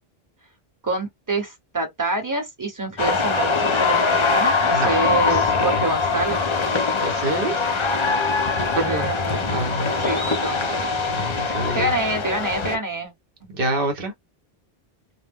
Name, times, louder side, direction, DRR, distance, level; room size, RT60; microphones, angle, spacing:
voice 1, 0.8-6.4 8.9-9.4 10.0-10.8 11.7-13.1, right 2 dB, 20° right, 0.9 m, -26 dB
sound 1, 3.0-12.8, left 4 dB, 35° left, 0.5 m, -22 dB
voice 2, 4.7-6.0 7.0-7.7 8.7-9.1 9.5-9.9 11.1-11.9 13.5-14.1, right 2 dB, 60° right, 1.0 m, -27 dB
2.1 x 2.0 x 3.5 m
omnidirectional pair, 1.1 m